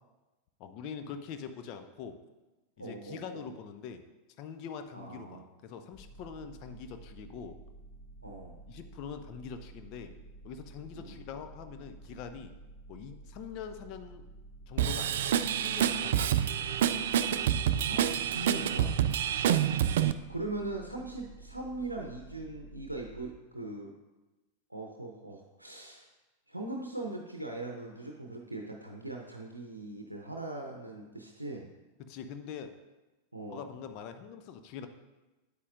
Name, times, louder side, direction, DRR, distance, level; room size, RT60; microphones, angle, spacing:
voice 1, 0.6-2.2 2.8-4.0 4.4-7.6 8.7-10.2 10.4-12.5 12.9-14.2 14.7-16.2 19.3-19.5 32.0-32.7 33.5-34.9, left 7 dB, 40° left, 7 dB, 0.7 m, -44 dB
voice 2, 2.8-3.4 4.9-5.4 8.2-8.6 10.9-11.2 17.9-18.9 20.3-23.9 24.7-26.1 26.5-31.7 33.3-33.7, right 2 dB, 85° right, 1 dB, 0.7 m, -40 dB
sound 1, 5.9-23.3, right 2 dB, 20° left, 1.2 m, -51 dB
Drum kit / Drum, 14.8-20.1, right 10 dB, 55° right, 0.3 m, -27 dB
8.6 x 8.3 x 2.5 m, 1.1 s
figure-of-eight pair, 90°, 0 cm